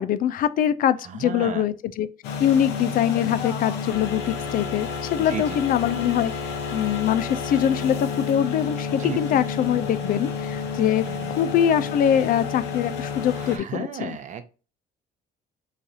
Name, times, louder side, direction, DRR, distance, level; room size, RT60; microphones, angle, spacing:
voice 1, 0.0-2.1 2.4-14.2, left 10 dB, 55° left, 0.4 m, -23 dB
voice 2, 1.0-1.7 5.2-5.6 9.0-9.2 11.1-11.3 13.3-14.5, right 7 dB, 45° right, 0.7 m, -34 dB
sound 1, 2.2-13.6, left 5 dB, 85° left, 0.9 m, -30 dB
3.9 x 3.2 x 2.6 m
cardioid pair, 110°, 17 cm